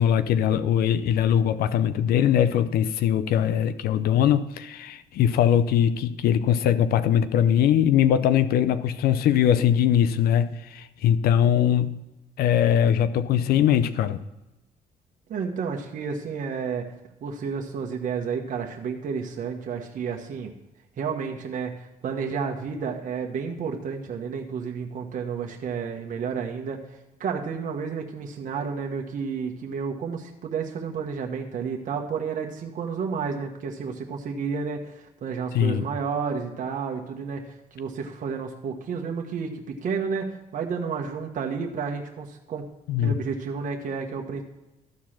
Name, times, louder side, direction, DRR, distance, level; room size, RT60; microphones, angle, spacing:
voice 1, 0.0-12.0 12.4-14.2 35.5-35.9 42.9-43.1, left 9 dB, 75° left, 12 dB, 0.6 m, -21 dB
voice 2, 15.3-16.9 17.2-20.5 21.0-42.6 43.0-44.4, right 6 dB, 55° right, 2 dB, 1.3 m, -31 dB
13.0 x 4.7 x 5.8 m, 0.98 s
cardioid pair, 95°, 16 cm